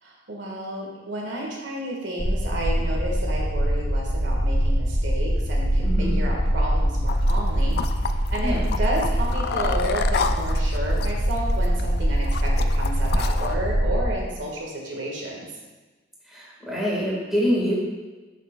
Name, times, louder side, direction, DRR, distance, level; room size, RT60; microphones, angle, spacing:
voice 1, 0.0-7.8 8.3-15.5, right 1 dB, 80° right, -2 dB, 1.5 m, -31 dB
sound 1, 2.2-14.1, equal, 30° left, 0.8 m, -23 dB
voice 2, 5.8-6.2 8.4-8.7 16.3-17.7, equal, ahead, -6 dB, 1.6 m, -25 dB
sound 2, 7.1-13.5, left 5 dB, 55° left, 0.3 m, -32 dB
7.9 x 6.5 x 2.3 m, 1.2 s
head